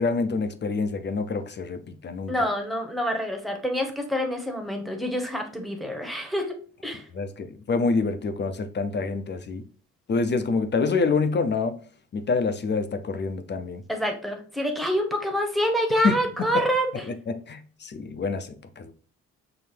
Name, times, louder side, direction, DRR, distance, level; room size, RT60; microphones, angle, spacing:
voice 1, 0.0-2.3 7.1-9.6 10.1-11.8 12.1-13.8 16.0-16.1 16.4-16.5 17.3-18.9, left 4 dB, 40° left, 0.5 m, -26 dB
voice 2, 2.3-7.1 13.9-17.0, equal, ahead, 1.0 m, -27 dB
5.8 x 2.0 x 3.3 m
cardioid pair, 70°, 29 cm